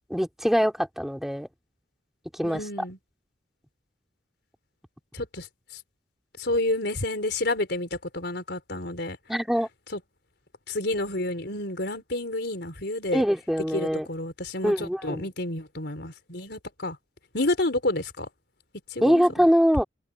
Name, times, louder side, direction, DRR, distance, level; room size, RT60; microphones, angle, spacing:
voice 1, 0.1-1.5 2.3-2.7 9.3-9.7 13.1-14.1 14.6-15.3 19.0-19.8, equal, ahead, 3.8 m, -23 dB
voice 2, 2.4-3.0 5.1-5.5 6.4-9.2 9.9-10.0 10.7-13.2 13.7-17.0 17.3-18.3 18.9-19.2, left 2 dB, 60° left, 4.9 m, -29 dB
head